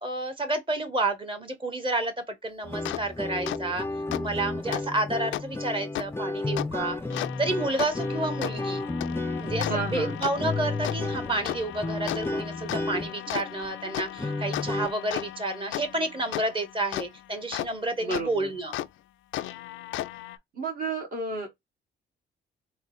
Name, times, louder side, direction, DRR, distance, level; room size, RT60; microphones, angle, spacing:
voice 1, 0.0-3.9 4.2-7.0 7.4-8.8 9.4-18.7, right 2 dB, 25° right, 1.2 m, -30 dB
sound 1, 2.6-14.9, left 2 dB, 10° left, 0.5 m, -32 dB
sound 2, 2.8-3.0 3.5-3.6 4.1-4.2 4.7-4.8 5.3-5.4 5.9-6.1 6.6-6.7 7.1-17.7 18.1-18.2 18.7-18.9 19.3-20.4, left 13 dB, 75° left, 0.4 m, -35 dB
voice 2, 9.7-10.2 18.0-18.6 20.5-21.5, right 3 dB, 45° right, 1.5 m, -32 dB
3.8 x 2.1 x 3.9 m
cardioid pair, 90°, 20 cm